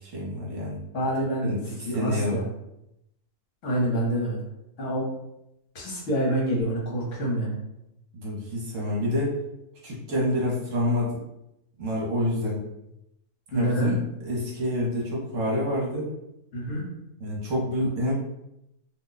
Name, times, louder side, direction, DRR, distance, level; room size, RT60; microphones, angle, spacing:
voice 1, 0.0-0.8 1.4-2.4 8.1-9.3 9.8-11.2 11.8-12.6 13.5-16.1 17.2-18.1, left 1 dB, 60° right, -4 dB, 1.1 m, -27 dB
voice 2, 0.9-1.6 1.9-2.4 3.6-4.4 4.8-5.1 5.7-7.6 13.5-13.9 16.5-16.8, right 1 dB, 55° left, -4 dB, 1.2 m, -27 dB
2.7 x 2.2 x 3.8 m, 0.84 s
omnidirectional pair, 1.6 m